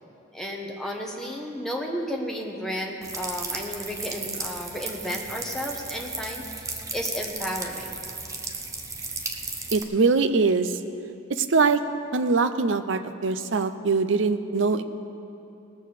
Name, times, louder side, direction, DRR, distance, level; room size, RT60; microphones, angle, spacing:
voice 1, 0.3-7.9, equal, ahead, -1 dB, 1.2 m, -33 dB
sound 1, 3.0-9.8, right 3 dB, 15° right, 0.7 m, -35 dB
voice 2, 9.7-10.8 11.3-11.8 12.1-14.8, right 4 dB, 70° right, 10 dB, 0.6 m, -22 dB
19.0 x 6.6 x 6.7 m, 2.9 s
head